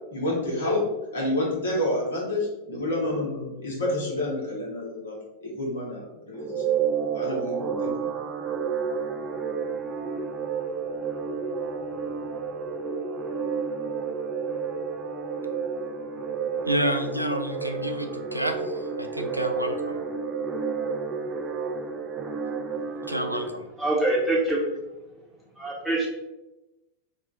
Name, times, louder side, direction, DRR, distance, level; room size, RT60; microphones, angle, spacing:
voice 1, 0.1-0.8 1.1-6.6 7.1-8.1, left 1 dB, 65° left, -4 dB, 1.2 m, -29 dB
sound 1, 6.3-23.5, right 6 dB, 20° right, 0.5 m, -31 dB
sound 2, 10.8-20.8, left 1 dB, 55° right, 1.1 m, -41 dB
voice 2, 16.7-20.0 23.1-23.7, equal, 90° right, 5 dB, 0.3 m, -29 dB
voice 3, 23.8-24.6 25.6-26.1, right 2 dB, ahead, -4 dB, 1.1 m, -24 dB
2.9 x 2.3 x 4.0 m, 1.0 s
figure-of-eight pair, 90°, 0 cm